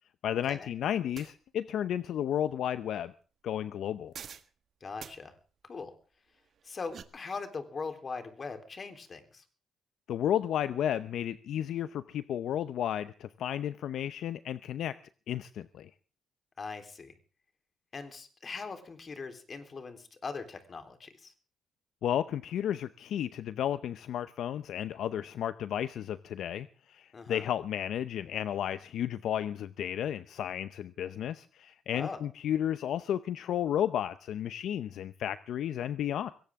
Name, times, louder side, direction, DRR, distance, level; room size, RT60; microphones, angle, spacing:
voice 1, 0.2-3.1 3.4-4.1 10.1-14.9 15.3-15.9 22.0-36.3, left 10 dB, 75° left, 13 dB, 0.7 m, -33 dB
sound 1, 1.1-1.3 4.1-4.5 5.0-5.2 6.6-7.0, right 7 dB, 60° right, 1.6 m, -45 dB
voice 2, 4.8-5.3 5.6-5.9 6.6-9.4 16.6-17.1 17.9-21.3 27.1-27.5 31.9-32.2, left 4 dB, 40° left, 7 dB, 3.6 m, -41 dB
22.0 x 17.5 x 3.6 m, 0.39 s
cardioid pair, 90°, 0 cm